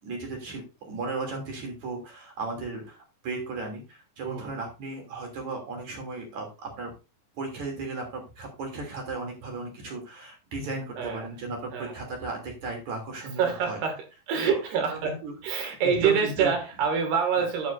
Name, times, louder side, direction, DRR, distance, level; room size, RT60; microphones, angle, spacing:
voice 1, 0.0-6.9 7.4-13.8 14.4-16.5 17.4-17.5, right 3 dB, 50° right, 4.1 m, -36 dB
voice 2, 11.0-11.3 11.7-11.9 13.4-17.7, right 6 dB, 75° right, 4.2 m, -26 dB
10.0 x 9.9 x 2.6 m
omnidirectional pair, 4.7 m